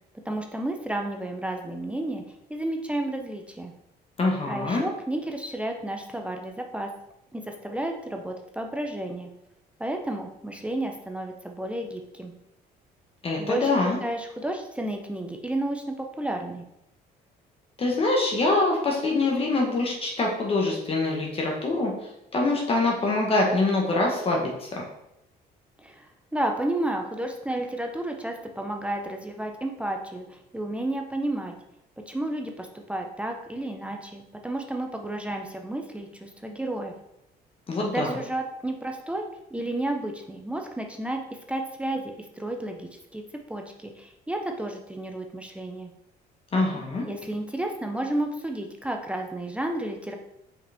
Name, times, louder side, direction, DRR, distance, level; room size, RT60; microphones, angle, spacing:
voice 1, 0.3-2.2 2.5-3.7 4.5-6.9 7.3-9.3 9.8-12.3 13.4-13.7 14.0-16.6 25.8-31.5 32.1-36.9 37.8-43.2 43.5-45.9 46.7-50.1, right 1 dB, 5° right, 3 dB, 0.6 m, -32 dB
voice 2, 4.2-4.9 13.2-14.0 17.8-21.9 22.3-24.8 37.7-38.2 46.5-47.1, left 2 dB, 35° left, -1 dB, 1.2 m, -24 dB
5.7 x 5.0 x 3.5 m, 0.84 s
cardioid pair, 110°, 17 cm